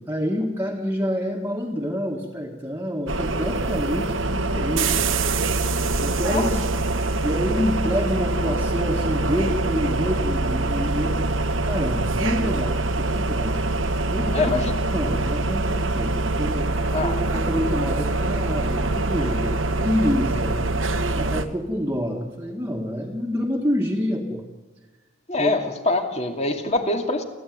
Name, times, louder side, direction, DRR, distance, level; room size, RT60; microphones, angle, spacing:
voice 1, 0.0-5.3 6.0-6.7 7.2-11.3 11.6-13.6 14.1-19.5 19.8-20.6 21.1-24.4 25.4-25.6, equal, 10° right, -1 dB, 1.8 m, -27 dB
sound 1, 3.1-21.5, right 2 dB, 85° right, 1.3 m, -24 dB
voice 2, 14.3-14.7 16.9-17.2 25.3-27.2, left 2 dB, 35° left, 4 dB, 2.5 m, -24 dB
29.0 x 14.0 x 9.4 m, 1.3 s
head